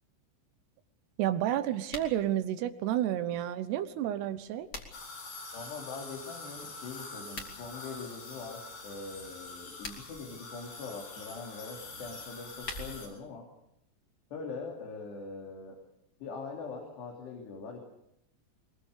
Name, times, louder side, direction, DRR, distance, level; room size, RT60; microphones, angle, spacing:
voice 1, 1.2-4.7, right 12 dB, 80° right, 12 dB, 3.1 m, -30 dB
sound 1, 1.8-2.2 4.2-5.2 7.2-7.6 9.6-10.2 12.2-13.2, left 2 dB, 25° left, 2.5 m, -44 dB
sound 2, 4.9-13.1, left 3 dB, 65° left, 8.6 m, -45 dB
voice 2, 5.5-13.5 14.3-15.8 16.2-17.8, left 4 dB, 85° left, 0 dB, 5.2 m, -42 dB
23.0 x 22.0 x 6.7 m, 0.80 s
omnidirectional pair, 4.7 m